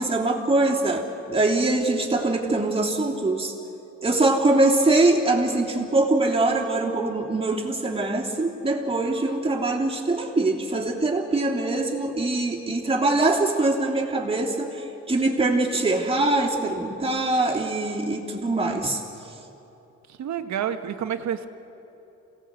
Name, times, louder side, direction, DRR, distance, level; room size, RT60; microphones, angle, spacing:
voice 1, 0.0-3.5 4.0-19.0, right 2 dB, 20° right, -1 dB, 3.2 m, -23 dB
voice 2, 20.1-21.5, right 9 dB, 65° right, 8 dB, 1.5 m, -29 dB
26.5 x 18.0 x 8.2 m, 3.0 s
cardioid pair, 90°, 30 cm